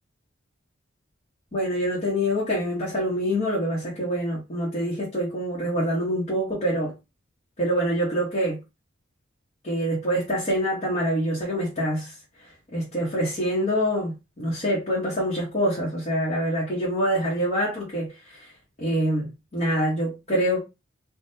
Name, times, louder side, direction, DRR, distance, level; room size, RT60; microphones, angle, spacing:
voice 1, 1.5-6.9 7.6-8.6 9.6-12.1 12.4-18.5 18.8-20.6, equal, 35° left, 1.1 m, -25 dB
3.5 x 2.4 x 2.7 m
head